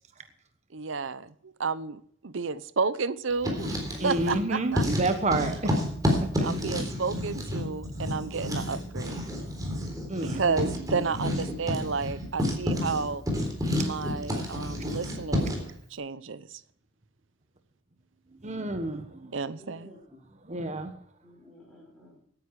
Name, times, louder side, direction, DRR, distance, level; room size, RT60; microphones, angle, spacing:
voice 1, 0.7-4.9 5.5-5.8 6.4-9.2 10.2-13.2 13.8-15.6 15.9-16.6 19.3-19.9, right 4 dB, 75° right, 0.8 m, -32 dB
Writing, 3.3-4.4 4.7-15.7, left 1 dB, 20° right, 3.8 m, -30 dB
voice 2, 4.0-5.7 6.4-6.5 10.1-10.7 18.4-19.3 20.5-20.9, right 2 dB, 35° right, 1.3 m, -29 dB
voice 3, 10.9-11.5 19.6-20.3 21.2-22.2, left 3 dB, ahead, 5.8 m, -48 dB
17.0 x 10.0 x 4.8 m
head